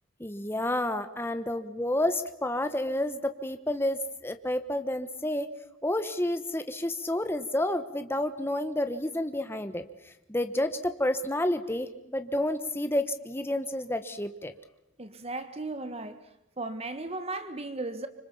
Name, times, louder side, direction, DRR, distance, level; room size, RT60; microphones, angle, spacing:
voice 1, 0.2-5.5 5.8-9.8 10.3-14.5, left 1 dB, 10° left, 1.1 m, -30 dB
voice 2, 15.0-16.2 16.6-18.1, right 2 dB, 30° right, 1.5 m, -36 dB
25.5 x 25.5 x 7.2 m
head